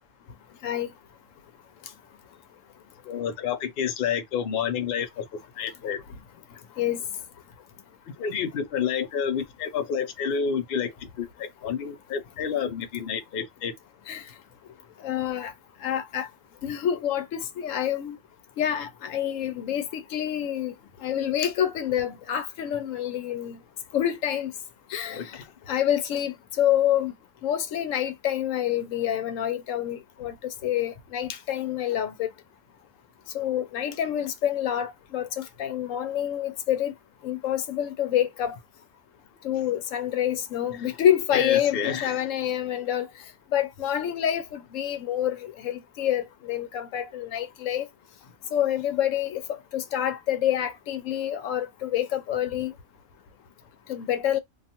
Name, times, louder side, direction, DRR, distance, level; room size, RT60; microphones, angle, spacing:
voice 1, 3.1-5.2 5.6-6.0 8.2-13.7 25.1-25.4 41.3-42.1, left 7 dB, 55° left, 0.7 m, -29 dB
voice 2, 15.0-15.5 15.8-16.3 16.6-18.2 18.6-20.7 21.0-23.6 23.9-24.5 24.9-25.2 25.7-27.1 27.4-30.3 30.6-32.3 33.3-36.9 37.2-38.6 39.4-43.1 43.5-45.4 45.6-47.9 48.5-49.4 49.7-52.7 53.9-54.4, left 10 dB, 85° left, 1.0 m, -27 dB
2.4 x 2.3 x 2.7 m
omnidirectional pair, 1.3 m